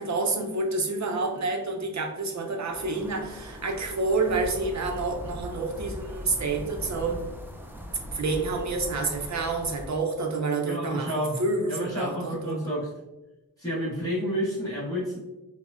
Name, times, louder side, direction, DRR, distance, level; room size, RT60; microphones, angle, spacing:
voice 1, 0.0-7.2 8.1-12.6, right 3 dB, 50° right, 3 dB, 0.6 m, -28 dB
sound 1, 2.7-9.9, equal, 5° right, 0.3 m, -40 dB
voice 2, 10.7-11.4 11.7-12.9 13.6-15.2, equal, 10° left, -12 dB, 1.2 m, -30 dB
4.6 x 2.1 x 2.4 m, 1.0 s
wide cardioid pair, 110°, 36 cm